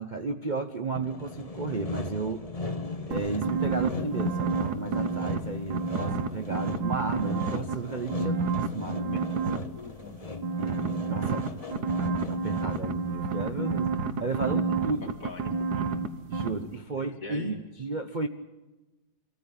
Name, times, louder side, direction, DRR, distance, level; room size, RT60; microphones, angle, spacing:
voice 1, 0.0-2.5 3.1-9.2 9.5-9.7 10.6-11.5 12.0-15.1 16.3-18.3, right 3 dB, 35° right, 5 dB, 0.8 m, -34 dB
Sawing, 1.0-13.0, left 3 dB, 25° left, 1.2 m, -39 dB
sound 1, 3.1-5.4 5.7-7.7 8.1-9.6 10.4-16.1 16.3-16.5, right 4 dB, 70° right, 1.7 m, -29 dB
voice 2, 9.5-10.5 14.7-15.9 16.5-16.8 17.2-17.6, left 4 dB, 55° left, 3 dB, 3.0 m, -43 dB
24.5 x 14.5 x 9.9 m, 1.1 s
omnidirectional pair, 1.8 m